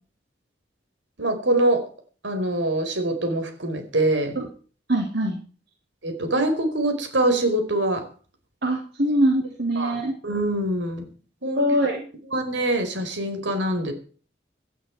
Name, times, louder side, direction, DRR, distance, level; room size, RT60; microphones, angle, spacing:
voice 1, 1.2-1.9 2.2-4.4 6.0-8.0 9.8-10.0 10.2-11.0 11.4-11.8 12.3-13.9, right 1 dB, 85° right, 7 dB, 4.7 m, -24 dB
voice 2, 4.9-5.4 8.6-10.1 11.6-12.0, right 1 dB, 65° right, 1 dB, 3.3 m, -22 dB
17.5 x 12.0 x 4.7 m, 0.40 s
head